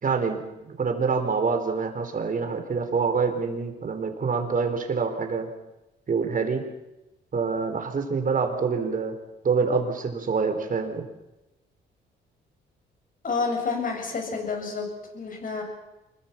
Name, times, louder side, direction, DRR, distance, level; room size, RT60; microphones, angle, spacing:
voice 1, 0.0-5.5 6.1-6.6 7.3-9.2 9.4-11.0, right 5 dB, 45° right, 5 dB, 4.4 m, -26 dB
voice 2, 13.2-14.9 15.1-15.6, left 4 dB, 45° left, 2 dB, 7.9 m, -29 dB
26.0 x 22.0 x 6.0 m, 0.97 s
cardioid pair, 90°, 20 cm